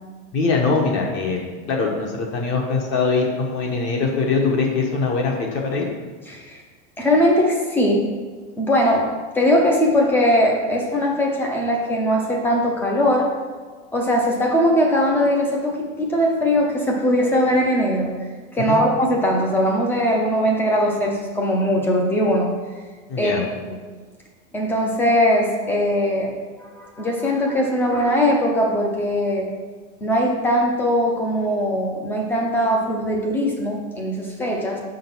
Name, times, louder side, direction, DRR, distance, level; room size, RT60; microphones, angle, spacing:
voice 1, 0.3-5.9 18.7-18.8 23.1-23.4, left 4 dB, 35° left, 0 dB, 1.2 m, -22 dB
voice 2, 6.3-6.6 7.0-8.1 8.6-9.0 9.3-13.3 13.9-18.1 18.5-22.5 23.2-23.8 24.5-26.3 26.6-29.5 30.0-34.8, equal, 5° left, 0 dB, 0.6 m, -20 dB
6.4 x 3.8 x 6.0 m, 1.5 s
supercardioid pair, 170°, 34 cm